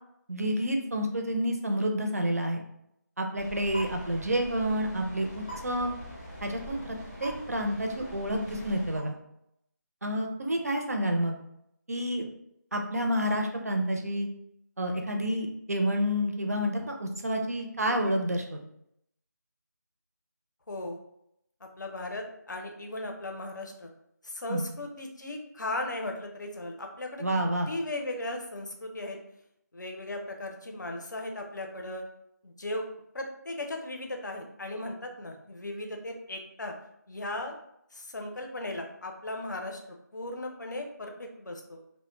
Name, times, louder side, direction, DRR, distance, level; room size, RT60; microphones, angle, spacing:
voice 1, 0.3-2.6 3.2-5.9 6.4-9.1 10.0-11.4 11.9-12.3 12.7-14.3 14.8-18.6 24.5-24.7 27.2-27.7, equal, 55° right, 3 dB, 0.4 m, -29 dB
sound 1, 3.3-9.0, equal, 15° left, 0.6 m, -43 dB
voice 2, 20.7-21.0 21.8-23.9 24.2-27.2 27.7-29.2 29.7-32.0 32.4-36.7 37.1-37.5 37.9-41.8, left 2 dB, 75° left, 3 dB, 0.6 m, -37 dB
2.1 x 2.1 x 3.0 m, 0.77 s
figure-of-eight pair, 180°, 10 cm